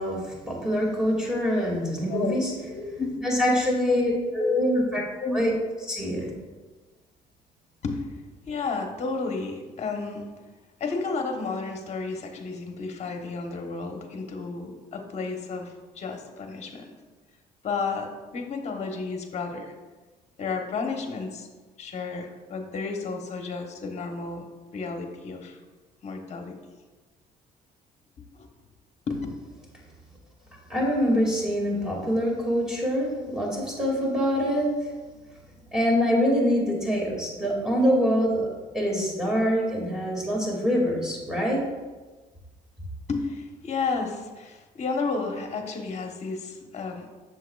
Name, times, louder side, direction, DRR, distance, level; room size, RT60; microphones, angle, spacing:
voice 1, 0.0-2.5 3.2-5.0 5.3-5.5 5.9-6.3 30.7-34.8 35.7-38.5 38.7-41.6, equal, 5° right, -3 dB, 2.1 m, -25 dB
voice 2, 2.1-3.1 3.9-4.0 4.4-4.7 5.2-5.4 7.8-8.0 8.5-10.3 10.8-16.9 17.6-19.7 20.4-21.5 21.8-24.4 24.7-25.6 26.0-26.6 28.4-28.5 29.1-29.3 43.1-47.1, left 4 dB, 40° left, 4 dB, 1.0 m, -32 dB
7.5 x 6.8 x 2.3 m, 1.3 s
cardioid pair, 110°, 17 cm